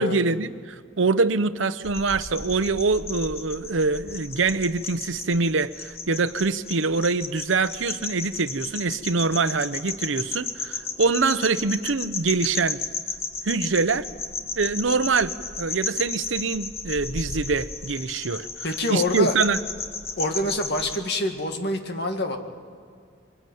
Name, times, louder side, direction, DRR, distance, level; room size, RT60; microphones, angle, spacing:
voice 1, 0.0-12.8 13.4-14.1 14.6-18.5 18.9-19.6, right 4 dB, 90° right, 13 dB, 0.8 m, -24 dB
sound 1, 1.8-21.0, left 4 dB, 35° left, 1.6 m, -34 dB
voice 2, 18.6-19.4 20.2-22.4, left 1 dB, 60° left, 4 dB, 2.2 m, -26 dB
23.5 x 20.0 x 9.3 m, 2.2 s
head